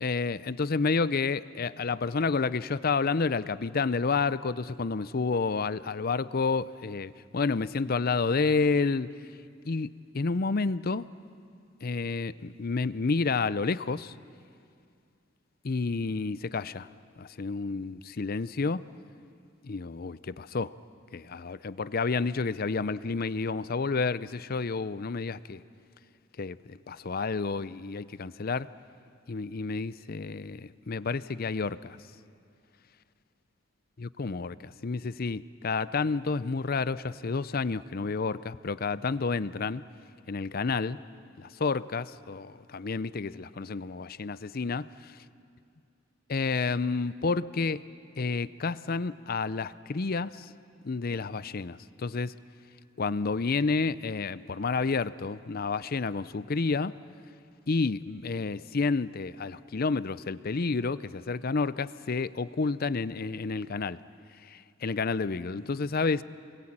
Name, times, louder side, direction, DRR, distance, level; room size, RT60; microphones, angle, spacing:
voice 1, 0.0-9.1 9.6-9.9 10.1-11.1 11.8-14.1 15.6-16.9 17.2-18.8 19.6-20.7 21.1-25.6 26.4-28.7 29.3-32.0 34.0-39.8 40.3-41.0 41.4-45.1 46.3-47.8 48.2-50.5 50.8-52.3 53.0-56.9 57.7-64.0 64.5-66.2, left 4 dB, 45° left, 0.6 m, -30 dB
28.0 x 21.5 x 8.8 m
head